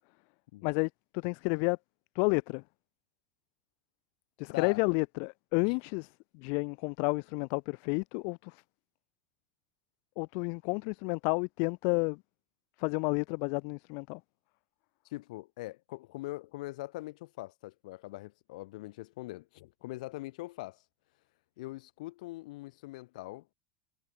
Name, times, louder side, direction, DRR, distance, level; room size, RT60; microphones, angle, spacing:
voice 1, 0.6-1.8 2.1-2.6 4.4-6.1 6.3-8.6 10.2-12.2 12.8-14.2, left 40 dB or more, 55° left, 1.6 m, -31 dB
voice 2, 15.0-20.8 21.6-23.5, left 19 dB, 70° left, 7.1 m, -42 dB
supercardioid pair, 140°, 4 cm